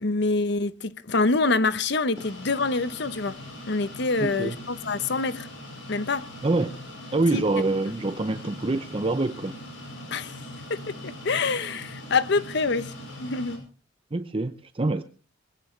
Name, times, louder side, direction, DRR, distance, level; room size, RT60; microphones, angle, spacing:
voice 1, 0.0-3.4 3.7-5.5 5.9-6.3 7.3-7.4 10.1-10.3 10.7-12.9 13.2-13.6, left 3 dB, 60° left, 0.9 m, -26 dB
sound 1, 2.1-13.6, left 1 dB, 85° left, 6.0 m, -41 dB
voice 2, 4.2-4.6 6.4-6.8 7.1-9.6 14.1-15.0, right 2 dB, 30° right, 0.7 m, -25 dB
21.5 x 17.0 x 3.3 m
head